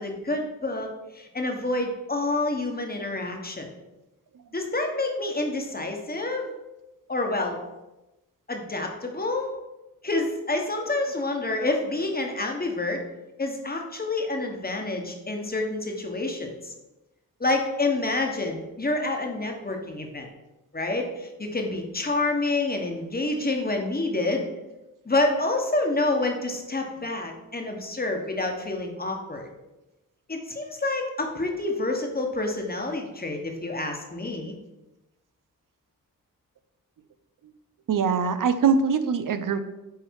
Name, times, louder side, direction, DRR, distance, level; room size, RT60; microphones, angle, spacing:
voice 1, 0.0-3.7 4.5-6.5 7.1-7.6 8.5-9.5 10.0-13.0 13.4-16.7 17.4-20.3 20.7-24.5 25.0-29.5 30.3-34.6, left 2 dB, 25° left, 2 dB, 1.4 m, -28 dB
voice 2, 37.9-39.6, right 5 dB, 65° right, 11 dB, 0.7 m, -22 dB
8.2 x 3.2 x 4.7 m, 1.0 s
cardioid pair, 60°, 35 cm